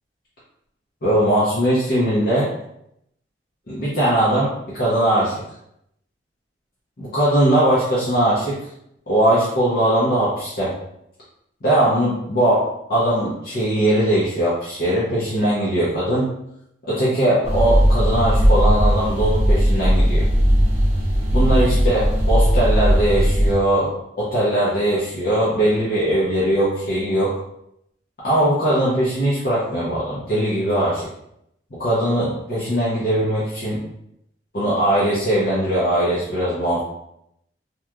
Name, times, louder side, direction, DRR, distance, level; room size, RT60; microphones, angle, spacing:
voice 1, 1.0-2.5 3.7-5.4 7.0-8.6 9.1-10.7 11.6-16.3 16.8-20.2 21.3-23.9 24.2-27.3 28.2-31.1 31.7-33.8 34.5-36.8, right 1 dB, 55° left, -8 dB, 0.7 m, -20 dB
small cellar room-tone, 17.4-23.6, equal, 40° right, 0.5 m, -17 dB
2.9 x 2.3 x 2.3 m, 0.77 s
head